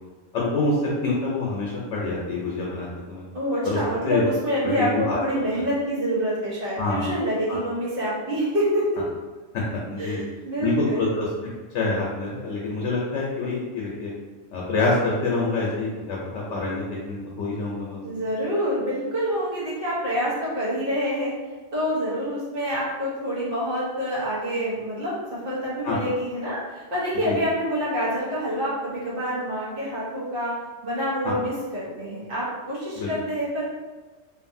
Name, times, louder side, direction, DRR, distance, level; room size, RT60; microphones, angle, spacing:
voice 1, 0.3-3.2 3.6-3.8 4.0-4.2 4.8-5.4 6.8-7.1 7.5-7.6 9.5-10.2 10.6-11.3 11.7-14.1 14.5-18.0 25.8-26.0 27.2-27.4 31.2-31.3 33.0-33.1, left 3 dB, 85° left, -4 dB, 0.9 m, -26 dB
voice 2, 3.3-9.0 10.0-11.1 18.0-21.3 21.7-30.5 30.8-33.6, equal, 55° right, -9 dB, 1.0 m, -27 dB
2.5 x 2.5 x 2.5 m, 1.3 s
omnidirectional pair, 1.2 m